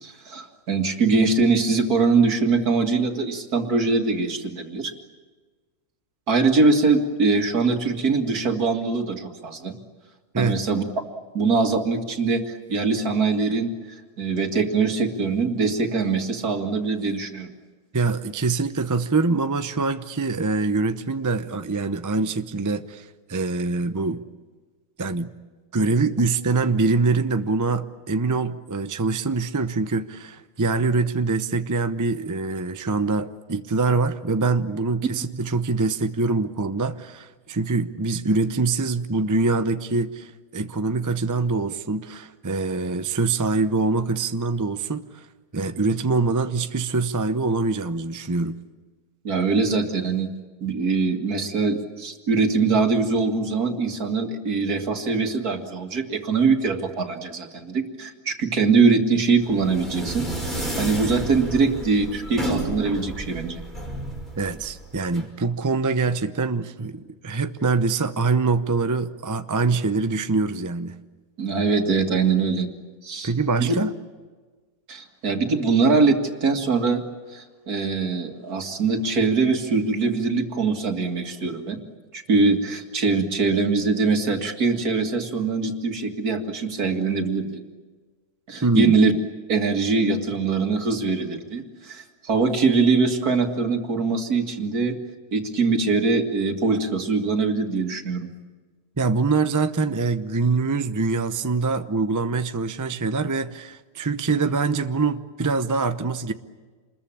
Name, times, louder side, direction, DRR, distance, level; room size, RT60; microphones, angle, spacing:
voice 1, 0.0-4.9 6.3-9.7 10.4-10.8 11.3-13.7 14.2-17.5 49.2-50.3 50.6-63.6 71.4-72.7 73.0-73.3 73.6-73.8 74.9-77.0 77.3-81.8 82.1-87.6 88.5-89.1 89.5-95.0 95.3-98.3, right 4 dB, 70° right, 4 dB, 2.6 m, -22 dB
voice 2, 17.9-24.2 25.0-25.3 25.7-45.3 45.5-48.6 64.4-71.0 73.2-73.9 88.6-89.0 99.0-106.3, right 3 dB, 20° right, 10 dB, 0.5 m, -24 dB
sound 1, 59.4-65.2, right 1 dB, ahead, 5.4 m, -31 dB
27.5 x 21.5 x 8.7 m, 1.4 s
omnidirectional pair, 1.7 m